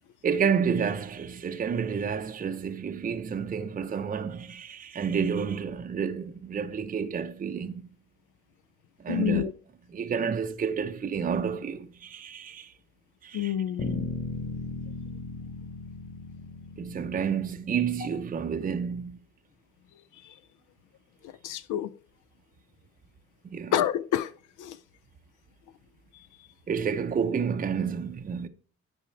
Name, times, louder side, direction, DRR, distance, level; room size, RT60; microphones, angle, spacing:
voice 1, 0.2-7.8 9.0-9.5 9.9-12.7 13.2-13.5 16.8-19.2 23.5-23.7 26.7-28.5, right 6 dB, 30° right, 0.6 m, -30 dB
voice 2, 9.1-9.5 13.3-14.1 20.2-20.3 21.4-21.9 23.7-24.3 24.6-24.8, left 10 dB, 80° left, 0.5 m, -28 dB
Bass guitar, 13.8-18.1, left 3 dB, 45° left, 2.1 m, -37 dB
9.0 x 5.0 x 4.5 m
cardioid pair, 90°, 30 cm